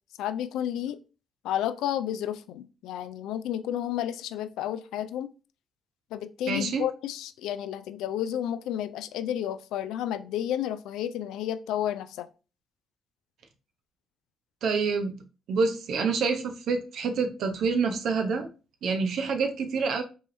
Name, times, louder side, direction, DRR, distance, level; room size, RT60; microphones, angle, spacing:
voice 1, 0.2-1.0 1.4-5.3 6.1-12.3, left 11 dB, 90° left, 12 dB, 0.4 m, -31 dB
voice 2, 6.5-6.9 14.6-15.2 15.5-18.5 18.8-20.0, right 4 dB, 75° right, 5 dB, 0.8 m, -27 dB
5.4 x 3.3 x 2.6 m, 0.32 s
cardioid pair, 90°, 0 cm